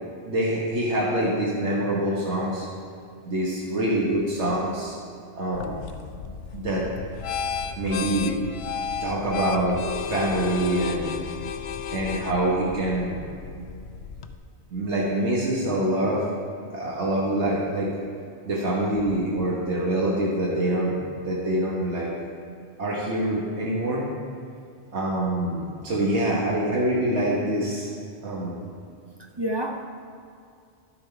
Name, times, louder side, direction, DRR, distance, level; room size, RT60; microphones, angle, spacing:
voice 1, 0.2-2.7 3.2-4.9 5.4-5.8 6.5-6.8 7.7-8.3 9.0-9.8 10.1-11.1 11.9-13.2 14.7-16.2 16.7-17.9 18.5-21.0 21.2-22.1 22.8-24.1 24.9-27.9 28.2-28.5, right 1 dB, 85° right, -5 dB, 1.7 m, -25 dB
sound 1, 5.5-14.4, left 7 dB, 70° left, 0.8 m, -33 dB
voice 2, 29.2-29.8, right 1 dB, 35° right, 3 dB, 0.4 m, -31 dB
11.5 x 7.5 x 4.5 m, 2.4 s
omnidirectional pair, 1.1 m